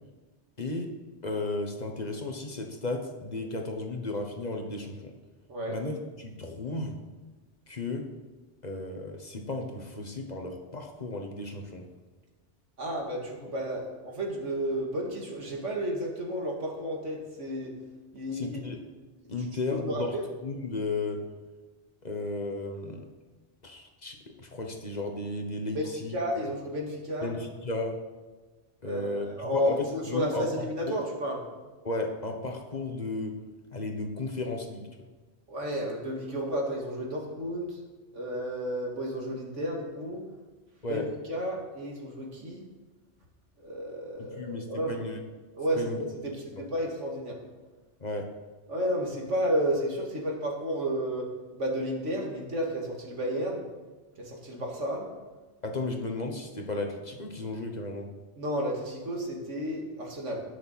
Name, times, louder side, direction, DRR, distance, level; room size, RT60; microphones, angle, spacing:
voice 1, 0.6-0.9 1.2-5.1 5.7-7.0 7.7-8.1 8.6-11.9 18.3-18.8 19.3-20.2 20.4-21.2 22.0-23.1 23.6-26.5 27.2-28.0 28.8-30.5 30.9-31.0 31.8-33.4 33.7-34.9 40.8-41.1 44.2-45.2 45.8-46.6 48.0-48.3 55.6-58.1, left 2 dB, 35° left, 3 dB, 1.3 m, -34 dB
voice 2, 12.8-17.7 18.1-18.6 19.4-20.2 25.7-27.3 28.8-31.4 35.5-37.8 38.1-40.2 40.9-41.0 41.3-42.6 43.6-45.0 45.5-47.4 48.7-53.6 54.2-55.1 58.4-60.4, equal, 85° right, 0 dB, 2.3 m, -32 dB
18.5 x 6.5 x 4.2 m, 1.3 s
omnidirectional pair, 1.2 m